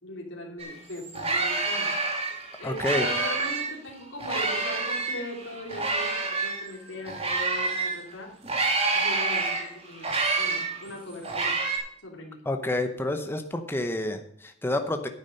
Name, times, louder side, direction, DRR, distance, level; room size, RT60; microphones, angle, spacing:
voice 1, 0.0-1.9 2.6-8.3 8.9-11.6 12.0-12.4, left 1 dB, 70° left, -1 dB, 2.9 m, -39 dB
sound 1, 0.6-0.7 1.0-3.7 4.2-8.0 8.4-11.8, right 3 dB, 30° right, 2.3 m, -28 dB
voice 2, 2.6-3.1 12.4-15.1, left 1 dB, 10° left, 6 dB, 0.8 m, -29 dB
10.0 x 8.7 x 5.3 m, 0.69 s
head